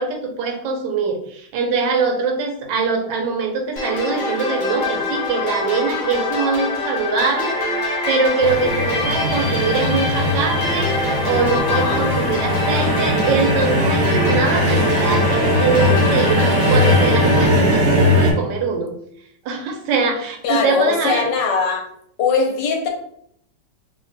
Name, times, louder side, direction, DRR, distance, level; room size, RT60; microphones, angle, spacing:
voice 1, 0.0-18.9 19.4-21.2, right 4 dB, 85° right, 3 dB, 1.3 m, -23 dB
sound 1, 3.8-17.5, left 2 dB, 45° left, 0.8 m, -25 dB
sound 2, 8.4-18.3, equal, 60° right, 1.1 m, -19 dB
voice 2, 11.7-12.0 12.5-13.0 20.4-21.9 22.2-22.9, left 5 dB, 80° left, 3 dB, 1.3 m, -21 dB
3.2 x 2.1 x 3.9 m, 0.69 s
omnidirectional pair, 2.0 m